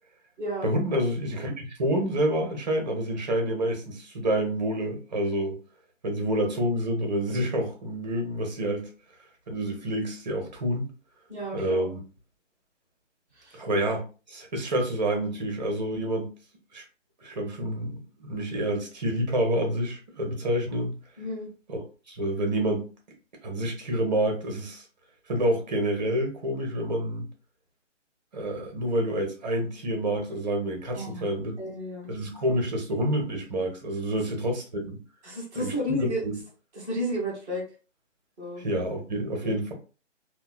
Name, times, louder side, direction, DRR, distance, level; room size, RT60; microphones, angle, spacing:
voice 1, 0.6-5.6 6.0-8.9 9.5-10.9 11.5-12.0 13.5-14.0 14.3-16.3 16.7-16.8 17.2-20.9 21.7-21.8 22.1-22.9 23.4-24.8 25.3-27.3 28.3-31.5 32.1-35.0 35.5-35.7 36.2-36.3 38.6-39.7, right 1 dB, 35° right, 0.8 m, -28 dB
voice 2, 11.3-11.8 13.3-13.6 21.2-21.5 30.9-31.3 31.6-32.1 35.2-36.2 36.7-37.6 38.4-38.6 39.4-39.5, equal, 5° right, 0.8 m, -32 dB
2.9 x 2.2 x 2.3 m
figure-of-eight pair, 150°, 37 cm